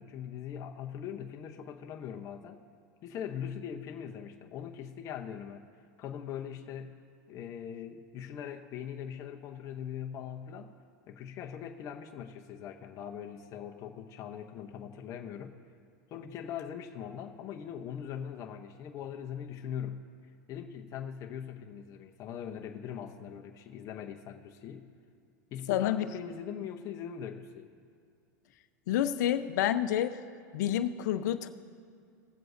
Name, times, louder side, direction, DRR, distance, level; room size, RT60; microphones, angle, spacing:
voice 1, 0.0-2.6 3.0-5.6 6.0-6.9 7.3-10.7 11.1-15.6 16.1-20.0 20.5-24.8 25.5-27.7, left 8 dB, 35° left, 3 dB, 0.8 m, -41 dB
voice 2, 25.7-26.0 28.9-30.2 30.5-31.5, left 11 dB, 65° left, 9 dB, 0.7 m, -28 dB
20.5 x 7.7 x 2.7 m, 2.4 s
supercardioid pair, 135°, 10 cm